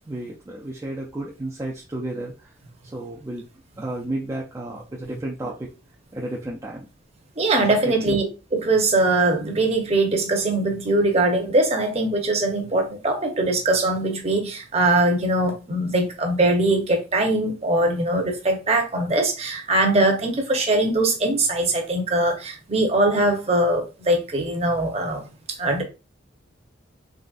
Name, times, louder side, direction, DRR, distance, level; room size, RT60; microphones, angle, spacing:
voice 1, 0.1-2.5 2.9-3.5 3.8-5.7 6.1-6.9 7.9-8.2, right 1 dB, 15° right, 0.4 m, -32 dB
voice 2, 7.4-8.2 8.5-25.2 25.5-25.8, right 2 dB, 30° right, 0.8 m, -21 dB
3.9 x 3.1 x 2.4 m
head